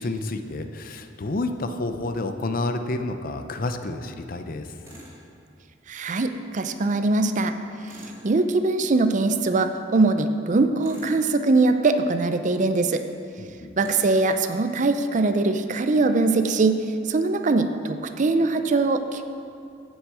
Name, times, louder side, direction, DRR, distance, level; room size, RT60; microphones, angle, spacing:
voice 1, 0.0-4.7 13.4-13.8, left 2 dB, 50° left, 7 dB, 0.6 m, -29 dB
Tools, 4.8-5.2 7.8-8.3 10.8-11.2 13.8-14.2, equal, 15° right, 2.6 m, -45 dB
voice 2, 5.9-7.5 8.2-13.0 13.8-16.8 17.1-19.2, right 3 dB, 45° right, 8 dB, 0.5 m, -22 dB
8.0 x 6.3 x 7.6 m, 2.5 s
head